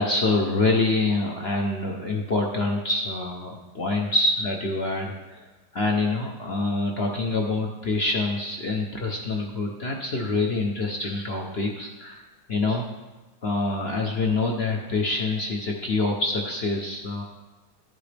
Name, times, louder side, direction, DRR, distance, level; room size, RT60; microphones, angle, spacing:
voice 1, 0.0-5.5 5.7-12.2 12.5-12.8 13.4-17.2, left 2 dB, 50° left, 0 dB, 0.7 m, -26 dB
11.5 x 9.0 x 3.4 m, 1.1 s
omnidirectional pair, 2.1 m